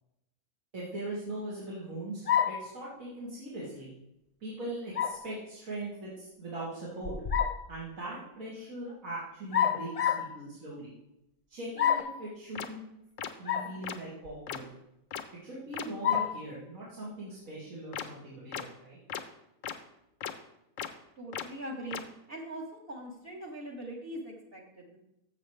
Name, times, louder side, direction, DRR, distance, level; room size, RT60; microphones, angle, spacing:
voice 1, 0.7-3.9 4.4-7.1 7.7-10.9 11.5-12.8 13.4-14.7 15.4-19.0, right 1 dB, 75° right, -8 dB, 2.7 m, -40 dB
sound 1, 2.3-2.7 4.9-5.2 7.0-7.6 9.5-10.3 11.8-12.2 13.4-13.7 14.2-14.3 16.0-16.4, left 9 dB, 45° left, 0.5 m, -28 dB
sound 2, 12.0-12.1 12.6-12.7 13.2-13.3 13.8-14.0 14.5-14.6 15.1-15.2 15.7-15.8 17.9-18.0 18.5-18.6 19.1-19.2 19.6-19.7 20.2-20.3 20.8-20.9 21.3-21.4 21.9-22.0, left 9 dB, 75° left, 1.1 m, -36 dB
voice 2, 21.2-22.0 22.3-25.0, right 1 dB, 45° right, -1 dB, 1.5 m, -41 dB
12.5 x 7.4 x 3.3 m, 0.85 s
omnidirectional pair, 1.4 m